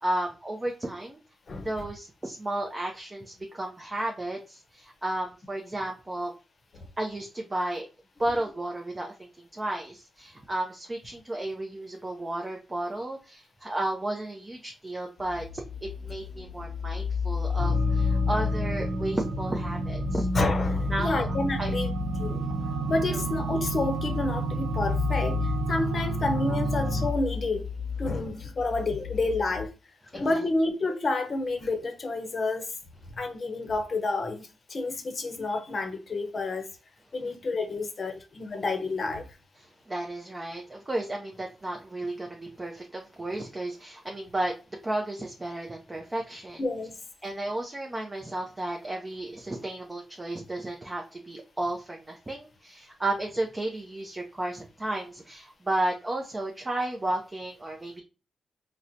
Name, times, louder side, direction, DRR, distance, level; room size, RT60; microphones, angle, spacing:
voice 1, 0.0-1.2 1.5-6.3 7.0-7.9 8.2-15.6 16.0-20.3 20.9-21.3 21.6-21.7 23.1-23.2 26.4-26.6 30.1-30.4 37.2-37.3 39.6-44.5 44.8-46.6 47.2-58.0, right 1 dB, 20° right, 0.5 m, -33 dB
sound 1, 15.2-29.7, left 6 dB, 65° left, 0.3 m, -32 dB
sound 2, 17.6-27.1, right 3 dB, 85° right, 0.8 m, -31 dB
voice 2, 20.3-21.9 22.2-22.5 22.9-25.4 25.7-27.6 28.0-29.7 30.1-32.7 33.1-36.7 37.1-39.3 46.6-46.9, left 2 dB, 45° left, 0.7 m, -29 dB
4.2 x 2.1 x 2.6 m
cardioid pair, 95°, 0 cm